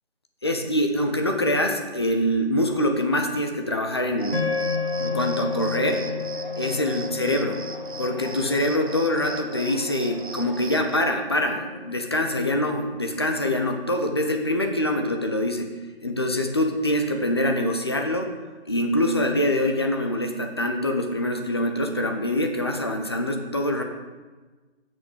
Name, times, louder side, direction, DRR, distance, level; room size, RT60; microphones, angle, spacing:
voice 1, 0.4-4.5 5.0-6.0 6.6-7.6 8.0-15.7 16.0-18.3 18.7-23.8, left 1 dB, 25° left, 4 dB, 0.7 m, -24 dB
Cricket, 4.2-11.0, right 3 dB, 50° right, 0.9 m, -39 dB
sound 1, 4.3-12.7, left 4 dB, 60° left, 2.0 m, -32 dB
8.2 x 6.4 x 6.1 m, 1.3 s
figure-of-eight pair, 160°, 32 cm